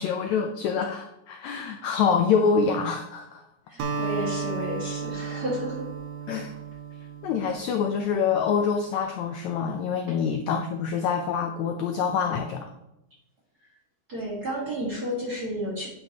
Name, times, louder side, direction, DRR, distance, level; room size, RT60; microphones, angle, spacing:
voice 1, 0.0-3.4 6.3-6.5 7.2-12.7, left 6 dB, 90° left, 4 dB, 1.6 m, -26 dB
voice 2, 3.7-5.9 14.1-15.9, equal, 40° right, -5 dB, 1.6 m, -32 dB
Acoustic guitar, 3.8-8.3, right 5 dB, 80° right, 1.4 m, -34 dB
9.7 x 7.3 x 2.9 m, 0.89 s
omnidirectional pair, 4.0 m